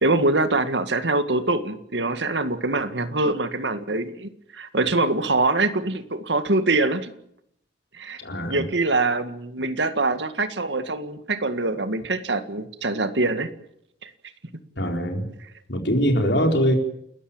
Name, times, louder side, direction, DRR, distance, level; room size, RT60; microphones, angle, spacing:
voice 1, 0.0-7.1 7.9-8.2 8.5-13.5 14.0-14.1, right 2 dB, 80° right, 10 dB, 1.9 m, -24 dB
voice 2, 8.2-8.7 14.8-15.2 15.7-16.7, equal, 75° left, 3 dB, 4.2 m, -22 dB
29.5 x 14.0 x 8.9 m, 0.73 s
head